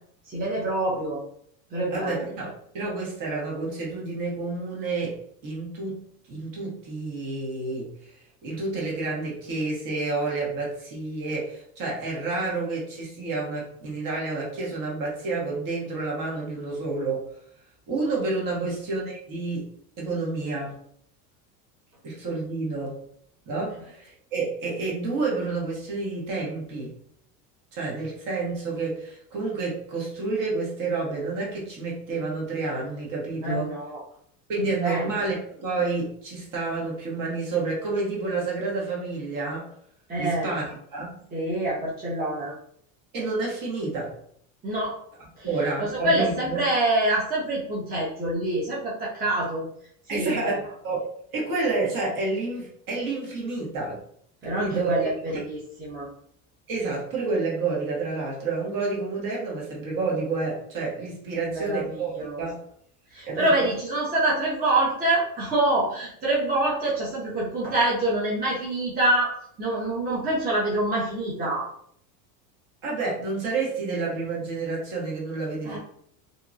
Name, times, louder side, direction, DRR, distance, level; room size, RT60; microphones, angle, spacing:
voice 1, 0.2-1.2 1.7-2.3 18.6-18.7 23.8-23.9 33.4-34.0 34.5-35.1 40.1-40.6 41.3-42.6 44.6-45.0 45.4-49.7 50.1-50.6 54.4-56.1 61.3-62.5 63.1-71.7 75.6-75.8, right 1 dB, 20° right, -6 dB, 0.7 m, -26 dB
voice 2, 1.9-6.0 6.3-7.9 8.4-17.3 17.9-19.7 20.0-20.8 22.0-23.0 23.5-26.9 27.7-33.7 34.5-39.7 40.2-41.2 43.1-44.1 45.4-46.6 50.1-51.0 51.3-54.0 54.4-55.4 56.7-62.6 63.3-63.7 72.8-75.8, right 3 dB, 45° right, -3 dB, 1.2 m, -29 dB
2.8 x 2.2 x 2.6 m, 0.65 s
supercardioid pair, 105°, 44 cm